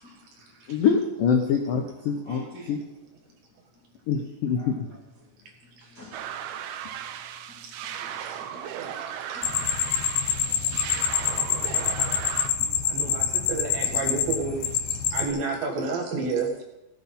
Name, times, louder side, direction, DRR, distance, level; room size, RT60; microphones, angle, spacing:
voice 1, 0.0-0.8 2.2-2.8 3.2-3.4 3.8-3.9 4.5-4.7 5.2-5.5 5.8-6.6 6.9-9.1 9.3-12.8 13.1-14.7, left 1 dB, 45° left, -4 dB, 1.0 m, -51 dB
voice 2, 0.7-2.4 2.7-2.8 4.1-4.9, left 6 dB, 85° left, 3 dB, 1.9 m, -24 dB
sound 1, 6.1-12.5, right 9 dB, 85° right, 2.1 m, -36 dB
voice 3, 8.0-8.3 9.3-9.4 12.9-14.6 15.1-16.5, right 4 dB, 60° right, 1 dB, 2.9 m, -30 dB
sound 2, 9.4-15.3, left 8 dB, 70° left, 3.2 m, -26 dB
17.5 x 8.5 x 5.5 m, 0.95 s
omnidirectional pair, 5.5 m